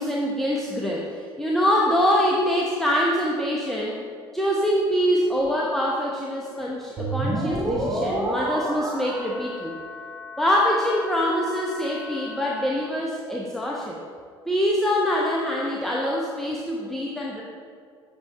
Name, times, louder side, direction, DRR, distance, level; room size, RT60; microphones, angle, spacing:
voice 1, 0.0-4.0 4.3-9.7 10.4-14.0 14.5-17.4, equal, ahead, -3 dB, 0.8 m, -24 dB
sound 1, 7.0-12.7, right 1 dB, 20° right, 1.5 m, -31 dB
7.8 x 6.3 x 3.3 m, 2.2 s
figure-of-eight pair, 60°, 14 cm